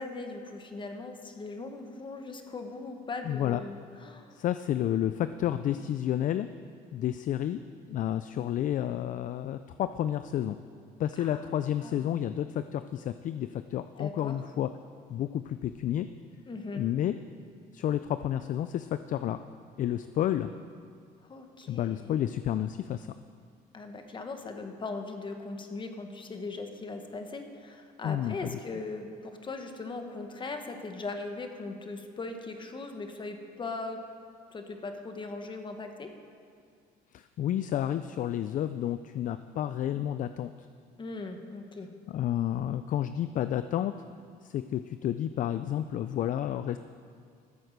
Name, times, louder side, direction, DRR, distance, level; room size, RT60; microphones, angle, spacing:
voice 1, 0.0-4.4 11.2-11.5 11.8-12.1 14.0-14.4 16.5-16.8 21.2-22.1 23.7-34.0 34.5-36.1 41.0-41.9, left 3 dB, 30° left, 5 dB, 1.3 m, -39 dB
voice 2, 3.3-3.6 4.3-6.5 6.9-7.6 7.9-10.6 11.0-14.7 15.1-16.1 16.7-17.2 17.7-19.4 19.8-20.5 21.7-23.1 28.0-28.6 37.1-40.5 42.1-43.9 44.4-46.8, left 11 dB, 50° left, 11 dB, 0.4 m, -30 dB
13.5 x 7.8 x 6.7 m, 2.2 s
cardioid pair, 110°, 17 cm